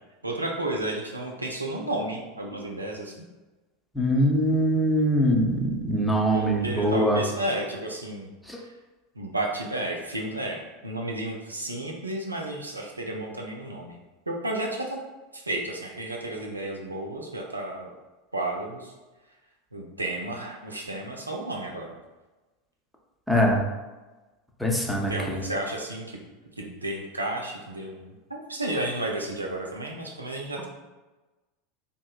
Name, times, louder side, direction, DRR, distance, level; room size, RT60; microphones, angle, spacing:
voice 1, 0.2-3.3 6.3-8.3 8.6-8.7 9.2-14.0 14.3-15.0 15.3-17.9 18.3-18.9 19.7-21.9 25.1-26.2 26.6-30.7, right 1 dB, 90° right, 0 dB, 0.4 m, -32 dB
voice 2, 3.9-7.2 8.5-8.6 23.3-23.6 24.6-25.4, equal, 5° left, -1 dB, 0.6 m, -23 dB
2.8 x 2.6 x 2.3 m, 1.2 s
figure-of-eight pair, 80°, 0 cm